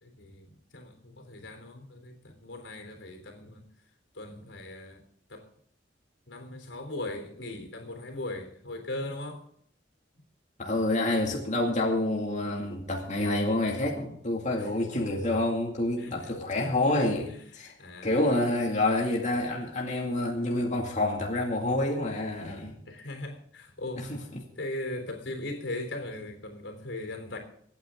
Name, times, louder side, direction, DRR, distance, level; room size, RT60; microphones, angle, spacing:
voice 1, 0.0-3.6 4.1-5.0 5.3-5.5 6.3-9.5 14.6-14.7 16.0-16.3 17.3-17.5 17.8-18.2 22.9-24.1 24.6-27.4, left 2 dB, 85° left, 3.5 m, -39 dB
voice 2, 10.6-17.7 18.0-22.7 24.0-24.4, left 2 dB, 40° left, 2.3 m, -28 dB
25.5 x 9.2 x 3.8 m
head